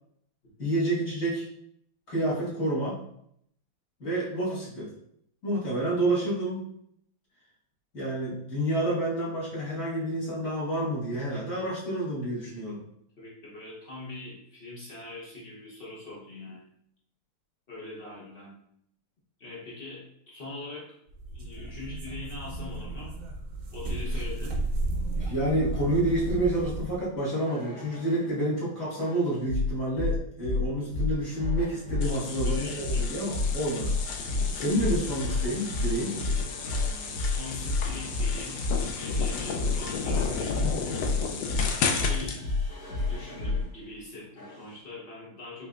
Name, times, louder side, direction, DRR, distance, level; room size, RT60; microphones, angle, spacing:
voice 1, 0.6-1.4 2.1-3.0 4.0-4.9 5.4-6.7 7.9-12.8 25.2-33.9 34.5-36.2 40.4-40.7, right 1 dB, 35° left, -8 dB, 1.7 m, -29 dB
voice 2, 13.2-16.7 17.7-18.5 19.4-21.0 21.3-23.1 23.7-24.6 32.0-33.1 36.7-41.1 41.7-42.5 43.1-45.7, left 2 dB, 70° left, -5 dB, 0.5 m, -42 dB
sound 1, 21.1-27.1, right 2 dB, 65° right, 0.9 m, -33 dB
sound 2, 27.3-28.3 29.0-43.7 44.4-44.7, left 3 dB, 55° left, 2.4 m, -30 dB
sound 3, 32.0-42.4, left 5 dB, 90° left, 0.9 m, -34 dB
5.4 x 3.1 x 2.4 m, 0.71 s
omnidirectional pair, 2.4 m